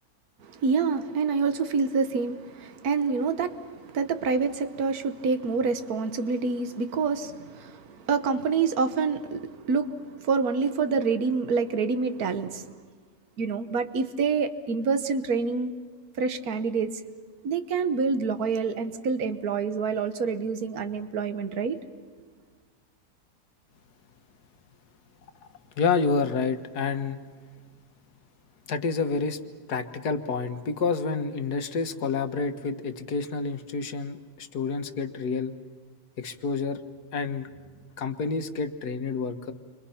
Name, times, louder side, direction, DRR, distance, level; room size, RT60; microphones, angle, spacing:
voice 1, 0.4-12.7 13.4-15.7 16.2-16.9 17.4-21.8, right 5 dB, 70° right, 1.7 m, -27 dB
voice 2, 25.8-27.2 28.7-29.4 29.7-35.5 36.2-36.8 37.1-37.5 38.0-39.5, left 4 dB, 85° left, 1.9 m, -28 dB
29.5 x 25.5 x 5.7 m
omnidirectional pair, 1.6 m